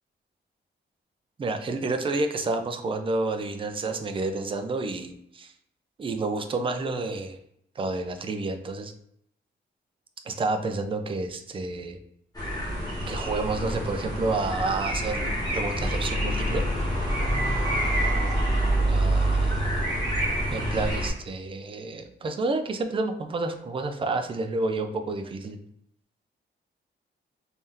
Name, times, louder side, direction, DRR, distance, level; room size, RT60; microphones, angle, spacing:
voice 1, 1.4-5.5 6.0-7.4 7.8-8.9 10.3-12.0 13.1-16.6 18.9-19.8 20.5-25.6, right 3 dB, 30° right, 6 dB, 0.4 m, -30 dB
Nuture environment little City., 12.3-21.1, right 1 dB, 20° left, 1.3 m, -26 dB
3.3 x 2.7 x 3.6 m, 0.74 s
wide cardioid pair, 140°, 19 cm